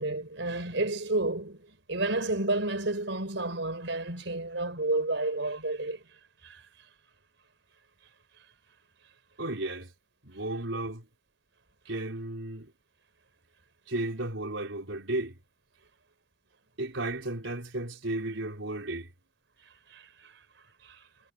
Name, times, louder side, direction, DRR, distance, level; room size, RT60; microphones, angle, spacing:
voice 1, 0.0-6.0 6.4-6.6 19.9-20.3 20.8-21.0, right 2 dB, 70° right, 5.8 m, -31 dB
voice 2, 9.4-9.9 10.2-11.1 11.8-12.7 13.9-15.4 16.8-19.1, right 2 dB, 85° right, 4.6 m, -34 dB
head